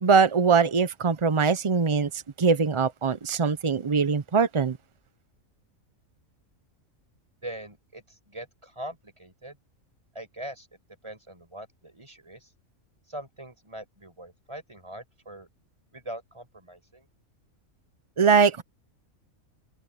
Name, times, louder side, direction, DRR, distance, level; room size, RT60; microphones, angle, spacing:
voice 1, 0.0-4.8 18.2-18.6, right 5 dB, 50° right, 0.3 m, -22 dB
voice 2, 7.4-9.6 10.1-10.7 11.0-12.5 13.1-15.5 15.9-17.1, right 1 dB, 20° right, 5.4 m, -42 dB
omnidirectional pair, 1.5 m